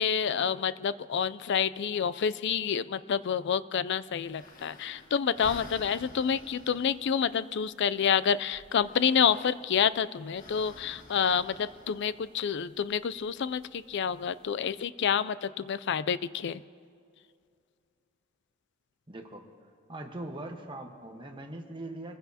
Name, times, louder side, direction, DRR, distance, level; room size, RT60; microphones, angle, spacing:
voice 1, 0.0-16.6, left 7 dB, 60° left, 15 dB, 0.4 m, -28 dB
sound 1, 4.2-14.8, left 2 dB, 45° left, 1.6 m, -52 dB
voice 2, 19.1-19.4 19.9-22.2, right 1 dB, 25° right, 3 dB, 1.2 m, -41 dB
26.5 x 15.5 x 2.8 m, 2.4 s
head